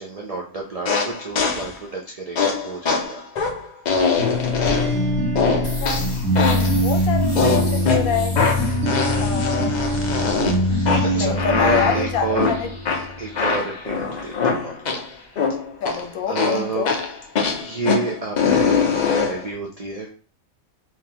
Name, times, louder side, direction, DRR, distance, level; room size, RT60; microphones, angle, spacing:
voice 1, 0.0-3.2 6.5-6.8 8.6-8.9 11.0-12.6 12.9-15.1 16.2-17.0 17.6-20.1, right 3 dB, 80° right, 0.3 m, -30 dB
sound 1, 0.9-1.8 2.4-5.0 5.4-6.8 7.4-15.1 15.4-16.0 16.4-19.5, left 5 dB, 60° left, 0.4 m, -23 dB
sound 2, 4.2-12.9, equal, 65° right, 1.4 m, -23 dB
sound 3, 5.6-17.3, left 1 dB, 25° left, 1.2 m, -41 dB
voice 2, 6.6-8.4 9.2-9.8 11.1-12.7 15.8-16.9, left 7 dB, 80° left, 1.1 m, -26 dB
3.6 x 3.1 x 2.8 m
omnidirectional pair, 1.5 m